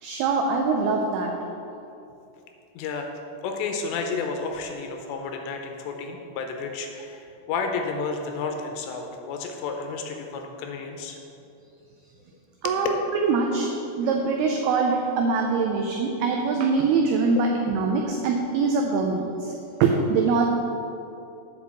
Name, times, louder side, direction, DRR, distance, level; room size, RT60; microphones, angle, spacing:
voice 1, 0.0-1.3 12.6-13.0 13.2-13.7 13.9-19.5 19.8-20.5, right 4 dB, 85° right, 2 dB, 2.2 m, -23 dB
voice 2, 2.8-3.1 3.4-11.2 12.6-12.8 17.4-17.5, left 4 dB, 80° left, 3 dB, 2.8 m, -31 dB
8.3 x 5.2 x 7.3 m, 2.8 s
omnidirectional pair, 5.3 m